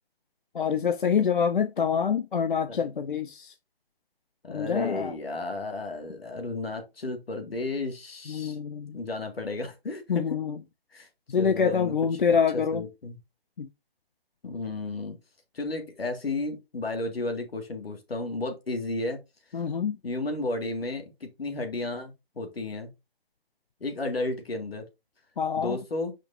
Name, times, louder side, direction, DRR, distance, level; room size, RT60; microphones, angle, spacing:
voice 1, 0.5-3.5 4.5-5.1 8.3-9.0 10.1-10.6 11.3-12.8 13.6-13.7 19.5-20.0 25.4-25.8, left 6 dB, 55° left, 0.7 m, -26 dB
voice 2, 4.4-8.6 8.9-10.4 10.9-11.1 11.4-12.3 12.5-13.2 14.4-15.2 15.5-19.2 19.5-19.6 20.0-22.9 23.8-24.8 25.6-26.1, left 2 dB, 70° left, 2.1 m, -33 dB
10.5 x 5.2 x 2.6 m
figure-of-eight pair, 150°, 31 cm